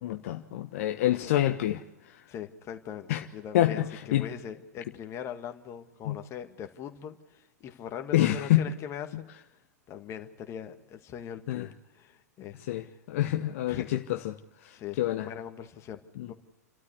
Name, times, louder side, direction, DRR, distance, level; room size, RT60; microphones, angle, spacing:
voice 1, 0.0-1.8 3.1-3.2 3.5-3.9 4.1-4.3 6.1-6.2 8.1-8.6 11.5-11.7 12.7-14.4 14.6-15.3 16.2-16.3, left 14 dB, 55° left, 1.0 m, -27 dB
voice 2, 0.8-1.3 2.3-9.3 9.9-13.0 13.7-13.9 14.7-16.3, left 9 dB, 30° left, 1.9 m, -41 dB
29.0 x 13.0 x 8.2 m
figure-of-eight pair, 100°, 9 cm